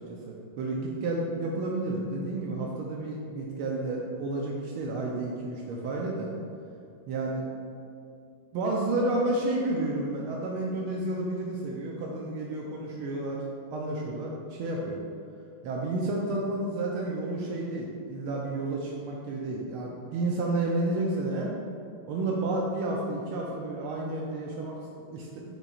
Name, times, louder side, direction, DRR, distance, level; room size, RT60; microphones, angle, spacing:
voice 1, 0.0-6.3 7.1-7.4 8.5-13.4 13.7-15.0 15.6-21.5 22.1-25.5, right 2 dB, 80° right, -2 dB, 1.6 m, -31 dB
8.9 x 6.0 x 2.4 m, 2.4 s
omnidirectional pair, 2.4 m